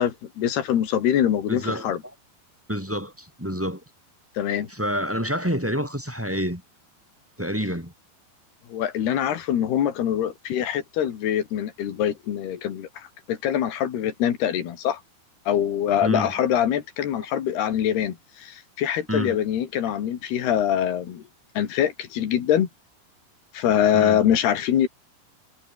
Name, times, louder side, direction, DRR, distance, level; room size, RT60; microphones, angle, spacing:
voice 1, 0.0-2.0 4.4-4.7 8.7-15.0 15.5-21.2 21.6-22.7 23.5-24.9, left 10 dB, 85° left, 4.3 m, -24 dB
voice 2, 1.5-2.0 2.7-3.8 4.7-6.6 7.4-7.9 16.0-16.4 19.1-19.4 23.9-24.2, equal, 5° right, 4.2 m, -28 dB
omnidirectional pair, 4.5 m